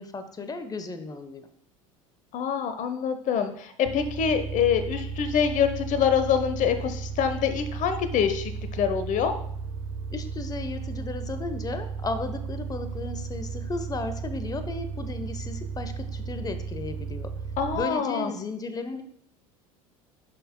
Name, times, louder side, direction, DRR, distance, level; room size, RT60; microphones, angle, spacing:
voice 1, 0.0-1.5 10.1-17.3 17.7-19.0, left 3 dB, 20° left, 9 dB, 1.0 m, -35 dB
voice 2, 2.3-9.3 17.6-18.3, left 7 dB, 45° left, 9 dB, 1.0 m, -25 dB
sound 1, 3.9-17.8, right 5 dB, 50° right, 0.8 m, -35 dB
11.0 x 5.7 x 2.2 m, 0.68 s
hypercardioid pair, 75°, 18 cm